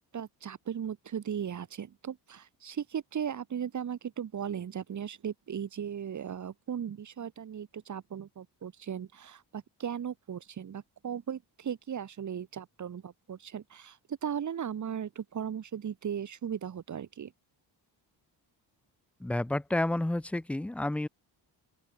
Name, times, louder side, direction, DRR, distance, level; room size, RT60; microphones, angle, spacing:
voice 1, 0.1-17.3, right 8 dB, 45° right, 2.0 m, -37 dB
voice 2, 19.2-21.1, left 1 dB, 5° left, 0.5 m, -30 dB
open air
wide cardioid pair, 150°, 41 cm